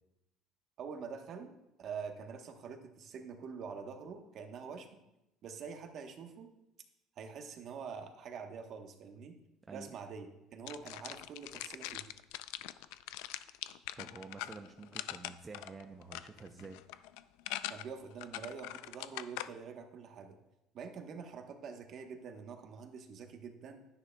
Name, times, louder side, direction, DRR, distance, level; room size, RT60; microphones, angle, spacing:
voice 1, 0.8-1.5 1.8-5.0 5.4-6.5 7.2-9.4 9.7-12.0 17.7-20.4 20.7-23.9, right 6 dB, 45° right, 5 dB, 1.0 m, -46 dB
sound 1, 10.7-19.5, left 15 dB, 85° left, 0.3 m, -42 dB
voice 2, 14.0-16.8, right 4 dB, 20° right, 4 dB, 0.5 m, -49 dB
11.0 x 10.0 x 2.2 m, 0.89 s
cardioid pair, 145°, 0 cm